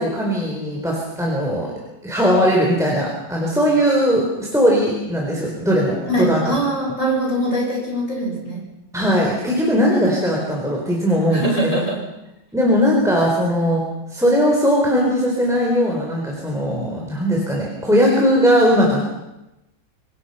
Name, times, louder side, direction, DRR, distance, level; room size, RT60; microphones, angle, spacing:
voice 1, 0.0-1.7 2.0-6.4 8.9-11.7 12.5-13.8 14.1-19.1, equal, ahead, -2 dB, 4.3 m, -19 dB
voice 2, 6.1-8.7 11.3-12.0, right 1 dB, 35° left, -1 dB, 7.1 m, -22 dB
26.5 x 20.0 x 5.8 m, 0.93 s
omnidirectional pair, 2.2 m